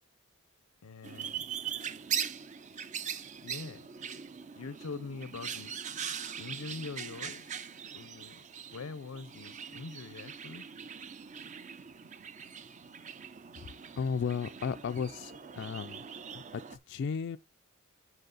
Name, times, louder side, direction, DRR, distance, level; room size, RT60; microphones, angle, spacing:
voice 1, 0.8-1.4 3.4-3.9 4.6-5.8 6.4-7.6 7.9-10.7, left 4 dB, 85° left, 0.6 m, -43 dB
sound 1, 1.0-16.8, right 8 dB, 35° right, 0.5 m, -41 dB
voice 2, 14.0-17.4, left 6 dB, 55° left, 0.3 m, -35 dB
7.8 x 4.8 x 3.9 m
head